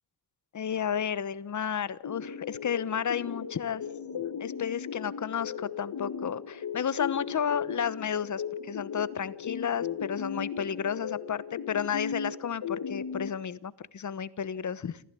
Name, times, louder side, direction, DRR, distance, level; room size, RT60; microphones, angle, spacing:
voice 1, 0.5-3.8 4.4-15.0, left 8 dB, 50° left, 18 dB, 1.1 m, -32 dB
sound 1, 2.0-13.3, left 7 dB, 70° left, 2.0 m, -37 dB
28.0 x 15.5 x 8.4 m, 0.72 s
wide cardioid pair, 150°, 37 cm